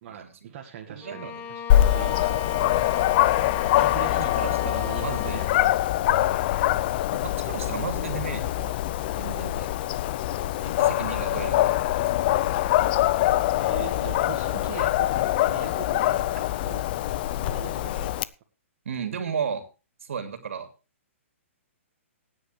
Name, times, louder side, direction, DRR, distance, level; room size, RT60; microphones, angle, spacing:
voice 1, 0.0-2.4 3.8-5.7 11.0-11.7 13.5-16.3 16.6-16.8 17.4-18.3, right 9 dB, 45° right, 1 dB, 1.9 m, -41 dB
voice 2, 0.9-1.5 4.4-5.4 6.1-6.4 7.2-8.7 9.2-9.7 10.8-11.7 18.8-19.6 20.0-20.7, right 7 dB, 70° right, 8 dB, 2.8 m, -34 dB
Bowed string instrument, 1.0-5.9, left 9 dB, 25° left, 1.3 m, -35 dB
Dog, 1.7-18.2, left 14 dB, 45° left, 0.6 m, -24 dB
18.5 x 9.7 x 3.3 m, 0.32 s
hypercardioid pair, 130°, 7 cm